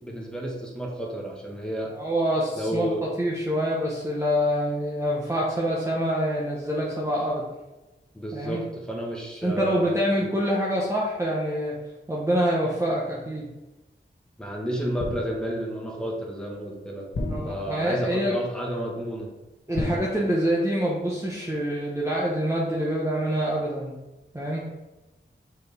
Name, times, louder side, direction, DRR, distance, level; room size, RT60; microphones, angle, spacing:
voice 1, 0.0-1.9 2.5-3.0 8.1-10.3 14.4-17.1 17.4-19.3, equal, 5° left, -2 dB, 1.5 m, -31 dB
voice 2, 2.0-7.4 8.3-8.6 9.4-11.8 12.1-13.5 17.3-18.3 19.7-24.0 24.3-24.6, equal, 15° right, -5 dB, 1.0 m, -26 dB
sound 1, 15.0-15.7 17.1-18.1 19.7-20.8 21.1-21.4, left 2 dB, 90° left, 1.1 m, -34 dB
6.2 x 4.5 x 3.4 m, 1.0 s
wide cardioid pair, 85°, 20 cm